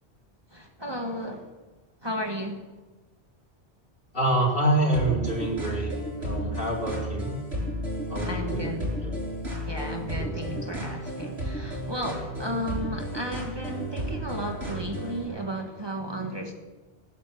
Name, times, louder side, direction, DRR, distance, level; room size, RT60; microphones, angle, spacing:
voice 1, 0.5-1.5 2.0-2.7 8.2-8.9 9.6-16.5, equal, 25° right, 2 dB, 1.6 m, -34 dB
voice 2, 4.1-5.9 6.2-7.3 8.1-9.1 10.2-10.3 10.7-10.8, right 1 dB, 60° left, -3 dB, 4.6 m, -27 dB
sound 1, 4.9-15.2, equal, 85° right, 7.5 m, -33 dB
18.5 x 10.5 x 7.2 m, 1.2 s
omnidirectional pair, 1.1 m